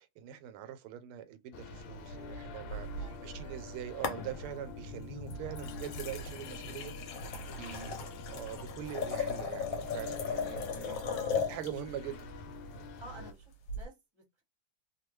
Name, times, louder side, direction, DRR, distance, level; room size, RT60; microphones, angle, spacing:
voice 1, 0.0-6.9 7.2-8.0 8.3-11.0 11.5-12.3 12.7-12.9, right 11 dB, 85° right, 1.5 m, -43 dB
sound 1, 1.5-13.3, left 2 dB, 85° left, 1.5 m, -45 dB
sound 2, 2.7-3.6 4.0-4.7 5.3-11.8 13.7-13.8, left 5 dB, 70° left, 1.4 m, -37 dB
voice 2, 3.0-3.8 7.4-8.1 11.0-11.7 13.0-14.4, right 1 dB, 25° right, 0.7 m, -53 dB
3.3 x 2.3 x 3.0 m
omnidirectional pair, 2.3 m